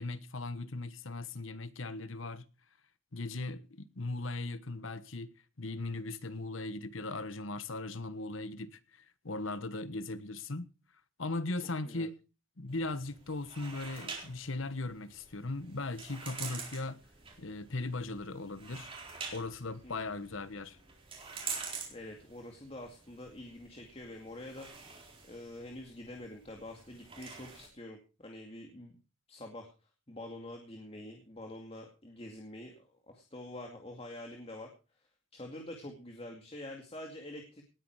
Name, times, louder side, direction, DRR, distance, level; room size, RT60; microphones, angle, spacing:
voice 1, 0.0-2.5 3.1-10.7 11.2-12.2 12.6-17.0 17.4-18.9 19.3-20.8, left 2 dB, 75° left, 1.2 m, -38 dB
sound 1, 12.7-27.7, right 5 dB, 25° right, 4.1 m, -47 dB
voice 2, 21.9-24.7 25.2-29.0 29.3-29.7 30.1-32.8 33.1-34.7 35.3-37.6, left 1 dB, 30° left, 2.3 m, -46 dB
19.0 x 9.7 x 4.8 m
head